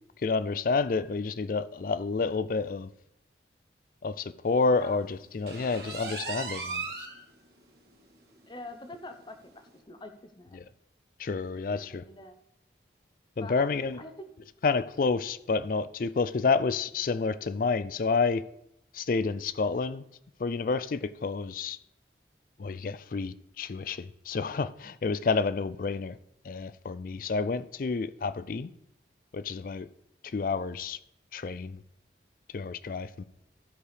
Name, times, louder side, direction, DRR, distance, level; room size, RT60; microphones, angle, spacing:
voice 1, 0.2-2.9 4.0-6.9 10.5-10.6 11.2-12.0 13.4-14.0 14.6-18.4 18.9-20.0 20.4-21.8 22.6-26.2 26.4-28.7 29.3-29.9 30.2-31.0 31.3-31.8 32.5-33.2, left 4 dB, 50° left, 0.4 m, -29 dB
sound 1, 5.5-7.2 7.6-7.7 8.1-8.2 8.6-8.7 9.7-9.8, right 4 dB, 60° right, 2.0 m, -37 dB
voice 2, 8.5-10.6 11.4-12.4 13.4-13.7 14.0-14.3, left 2 dB, 25° left, 0.8 m, -45 dB
13.5 x 4.8 x 4.9 m
head